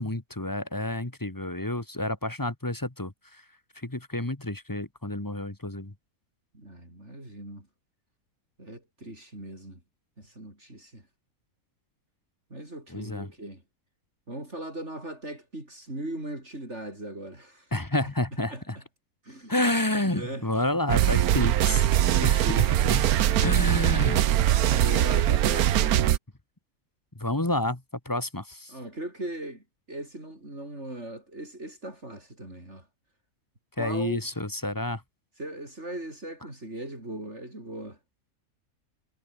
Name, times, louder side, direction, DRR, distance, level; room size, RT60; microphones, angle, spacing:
voice 1, 0.0-3.4 3.8-5.9 12.9-13.3 17.7-18.8 19.5-21.9 22.2-23.1 23.4-24.3 27.2-28.7 33.8-35.0, left 1 dB, 15° left, 1.7 m, -29 dB
voice 2, 6.5-7.7 8.6-9.8 10.2-11.0 12.5-13.6 14.3-17.7 18.5-18.6 19.2-19.5 20.0-20.5 22.1-22.8 24.7-26.0 28.7-32.9 33.8-34.2 35.4-38.0, right 1 dB, 50° right, 7.4 m, -38 dB
sound 1, 20.9-26.2, right 12 dB, 85° right, 1.3 m, -22 dB
omnidirectional pair, 1.5 m